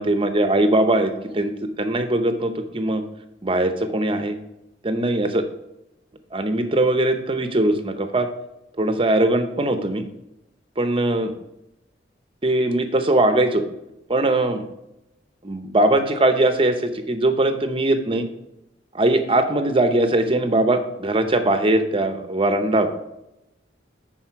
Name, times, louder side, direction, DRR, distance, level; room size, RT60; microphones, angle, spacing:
voice 1, 0.0-1.5 1.8-3.0 3.4-4.4 4.8-5.5 6.3-8.3 8.8-10.0 10.8-11.3 12.4-13.7 14.1-14.6 15.4-18.3 18.9-22.9, right 1 dB, 30° right, 8 dB, 0.8 m, -20 dB
10.5 x 4.4 x 4.5 m, 0.88 s
head